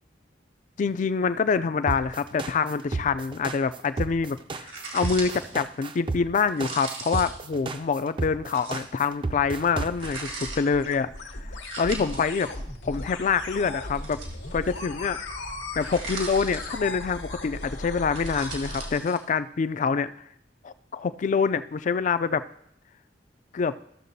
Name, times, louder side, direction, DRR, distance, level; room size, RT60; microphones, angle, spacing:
voice 1, 0.8-4.7 4.9-11.1 11.8-12.5 12.8-14.2 14.5-15.2 15.8-20.1 20.6-22.4 23.5-23.7, left 5 dB, 40° left, 13 dB, 0.3 m, -26 dB
sound 1, 1.9-10.3, right 3 dB, 25° right, 0.4 m, -32 dB
sound 2, 4.7-5.5 6.5-7.5 8.5-8.9 10.0-10.6 11.6-12.4 13.9-14.7 15.8-17.0 18.0-19.2, right 3 dB, 80° right, 1.9 m, -38 dB
sound 3, 9.3-19.0, left 2 dB, 80° left, 1.1 m, -37 dB
14.0 x 6.6 x 2.7 m, 0.72 s
head